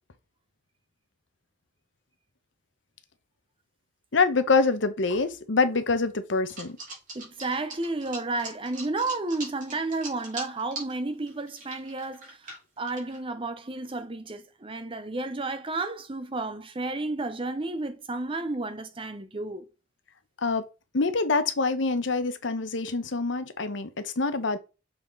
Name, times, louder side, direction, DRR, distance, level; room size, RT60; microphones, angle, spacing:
voice 1, 4.1-6.8 20.4-20.6 20.9-24.6, left 4 dB, 75° left, 0.9 m, -25 dB
sound 1, 6.5-10.9 11.3-13.2, right 3 dB, 40° right, 3.7 m, -40 dB
voice 2, 7.1-19.7, right 2 dB, 25° right, 0.8 m, -32 dB
7.2 x 4.1 x 4.0 m
head